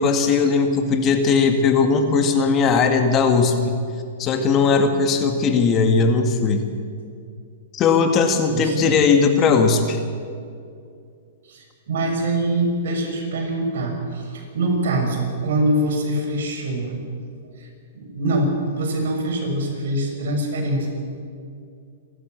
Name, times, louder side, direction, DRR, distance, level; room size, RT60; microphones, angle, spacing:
voice 1, 0.0-3.8 4.2-6.6 7.7-10.0, left 5 dB, 30° left, 5 dB, 2.0 m, -18 dB
voice 2, 8.5-9.0 11.4-17.0 17.6-17.7 17.9-20.9, right 1 dB, 70° right, 1 dB, 6.5 m, -24 dB
28.0 x 12.5 x 7.8 m, 2.3 s
hypercardioid pair, 135°, 0 cm